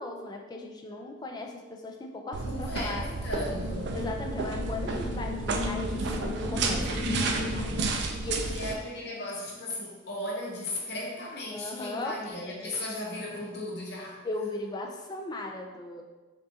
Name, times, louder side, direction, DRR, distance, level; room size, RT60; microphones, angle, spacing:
voice 1, 0.0-3.1 3.9-7.0 7.5-8.7 11.5-12.2 14.2-16.0, left 2 dB, 20° left, 2 dB, 0.3 m, -38 dB
sound 1, 2.3-8.7, right 3 dB, 60° right, 0.4 m, -32 dB
voice 2, 2.4-4.0 8.5-14.2, left 1 dB, 55° left, -3 dB, 0.7 m, -36 dB
sound 2, 3.2-8.2, left 2 dB, 40° right, 0.9 m, -35 dB
5.2 x 2.4 x 2.7 m, 1.2 s
head